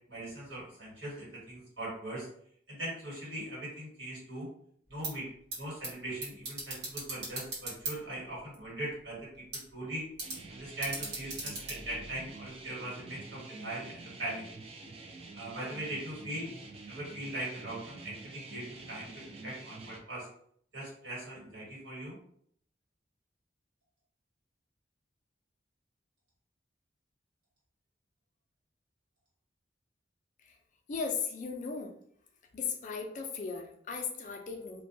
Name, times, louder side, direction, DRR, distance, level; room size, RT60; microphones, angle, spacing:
voice 1, 0.1-2.3 2.7-4.5 4.9-5.3 5.6-9.3 9.7-10.0 10.5-14.4 15.3-16.5 16.8-20.3 20.7-22.2, right 1 dB, 85° right, -6 dB, 1.4 m, -40 dB
sound 1, 4.9-12.7, right 2 dB, 65° right, 0.9 m, -42 dB
sound 2, 10.2-20.0, right 3 dB, 30° right, 0.3 m, -48 dB
voice 2, 30.9-31.9 32.5-34.8, left 5 dB, 45° left, 4 dB, 0.4 m, -37 dB
2.2 x 2.2 x 2.6 m, 0.64 s
head